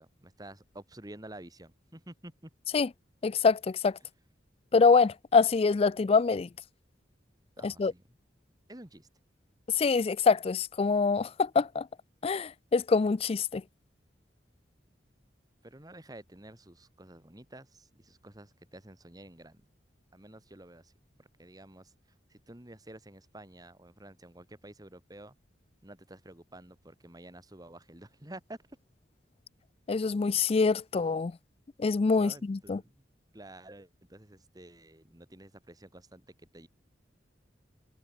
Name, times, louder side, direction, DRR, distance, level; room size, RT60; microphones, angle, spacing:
voice 1, 0.0-2.5 7.6-8.0 8.7-9.1 15.6-19.6 20.1-20.9 21.2-25.4 25.8-28.8 32.2-33.1 33.3-36.7, right 1 dB, 20° right, 1.9 m, -50 dB
voice 2, 3.2-3.9 4.7-6.5 7.6-7.9 9.8-11.9 12.2-13.6 29.9-31.3 31.8-32.8, left 4 dB, 30° left, 0.3 m, -25 dB
head